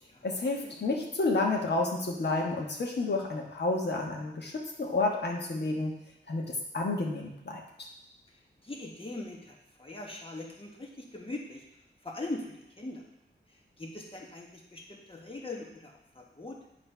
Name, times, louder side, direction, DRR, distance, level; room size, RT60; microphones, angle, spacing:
voice 1, 0.2-5.9 6.3-7.9, left 3 dB, 60° left, 0 dB, 1.3 m, -30 dB
voice 2, 8.6-11.6 12.0-13.0 13.8-16.7, left 2 dB, 30° left, -1 dB, 1.4 m, -41 dB
8.3 x 3.2 x 5.6 m, 0.84 s
wide cardioid pair, 70°, 19 cm